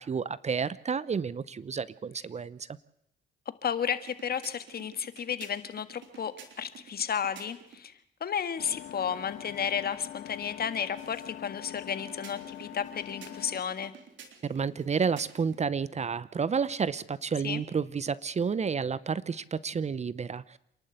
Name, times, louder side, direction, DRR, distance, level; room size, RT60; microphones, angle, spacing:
voice 1, 0.0-2.8 14.4-20.6, right 6 dB, 35° right, 19 dB, 0.7 m, -30 dB
voice 2, 3.6-7.9 8.2-13.9 17.4-17.6, left 8 dB, 50° left, 11 dB, 1.7 m, -33 dB
sound 1, 3.9-7.8 11.7-15.6, right 7 dB, 70° right, 3.7 m, -52 dB
sound 2, 8.6-13.6, left 12 dB, 90° left, 2.2 m, -44 dB
27.5 x 11.5 x 8.1 m, 0.78 s
cardioid pair, 90°, 20 cm